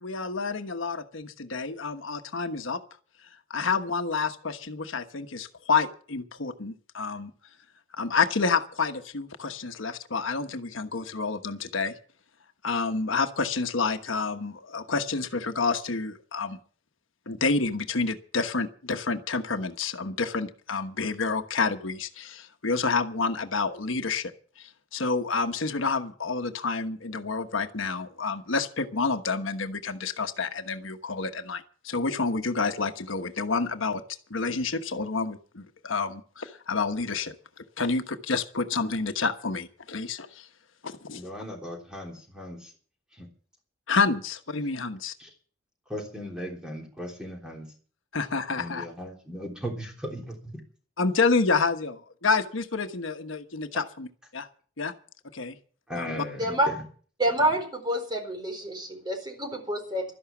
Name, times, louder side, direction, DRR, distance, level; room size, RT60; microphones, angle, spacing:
voice 1, 0.0-2.8 3.5-7.3 7.9-11.9 12.6-16.6 17.3-24.3 24.6-34.0 34.3-37.3 37.8-40.5 40.8-41.2 43.9-45.1 48.1-48.9 51.0-54.1 54.3-54.5 54.8-54.9 55.3-55.5 55.9-56.2, left 4 dB, 85° left, 8 dB, 1.2 m, -29 dB
voice 2, 41.1-42.7 43.1-43.3 45.2-45.3 45.9-47.7 48.6-50.6 55.9-56.8, equal, 5° right, 1 dB, 3.4 m, -37 dB
voice 3, 57.2-60.0, right 1 dB, 20° right, 3 dB, 4.2 m, -27 dB
12.5 x 11.0 x 7.2 m, 0.43 s
head